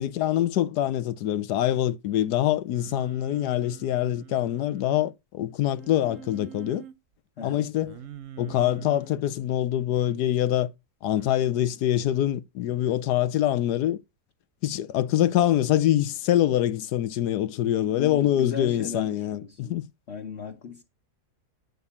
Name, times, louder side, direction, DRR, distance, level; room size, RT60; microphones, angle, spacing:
voice 1, 0.0-6.8 7.4-7.9 8.4-10.7 11.0-14.0 14.6-19.9, left 12 dB, 85° left, 1.3 m, -25 dB
Singing, 2.7-5.1 5.8-6.9 7.8-9.2 11.1-11.4, right 9 dB, 65° right, 0.9 m, -44 dB
voice 2, 7.4-7.7 17.8-19.7 20.1-20.8, left 5 dB, 45° left, 1.3 m, -37 dB
9.1 x 4.0 x 7.0 m
omnidirectional pair, 1.7 m